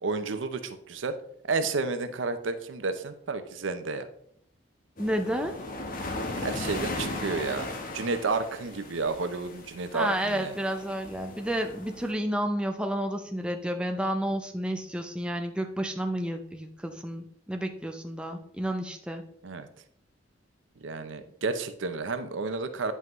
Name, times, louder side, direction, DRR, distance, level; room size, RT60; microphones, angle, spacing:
voice 1, 0.0-1.2 1.5-4.1 6.4-10.5 19.4-19.7 20.8-22.9, right 4 dB, 80° right, 10 dB, 0.6 m, -31 dB
sound 1, 5.0-12.1, left 2 dB, 45° left, 1.0 m, -37 dB
voice 2, 5.0-5.6 9.9-19.2, right 1 dB, 5° right, 4 dB, 0.5 m, -31 dB
9.3 x 5.5 x 3.1 m, 0.69 s
head